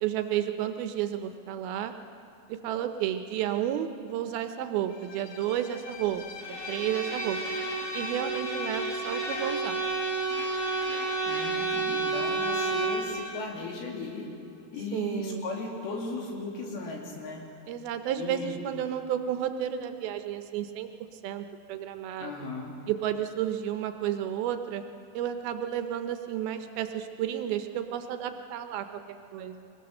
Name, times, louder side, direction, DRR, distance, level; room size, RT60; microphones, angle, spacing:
voice 1, 0.0-1.9 2.5-6.2 6.5-7.4 7.9-9.8 14.9-15.5 17.7-20.9 21.2-22.3 22.9-24.8 25.1-29.7, right 10 dB, 75° right, 8 dB, 2.5 m, -32 dB
Bowed string instrument, 4.9-13.5, left 6 dB, 90° left, 1.5 m, -42 dB
Bowed string instrument 2, 6.4-13.1, right 3 dB, 15° left, 4.3 m, -31 dB
voice 2, 11.3-14.3 14.7-17.4 18.2-18.6 22.2-22.7, left 3 dB, 70° left, -1 dB, 4.5 m, -37 dB
24.0 x 20.0 x 6.6 m, 2.6 s
omnidirectional pair, 4.6 m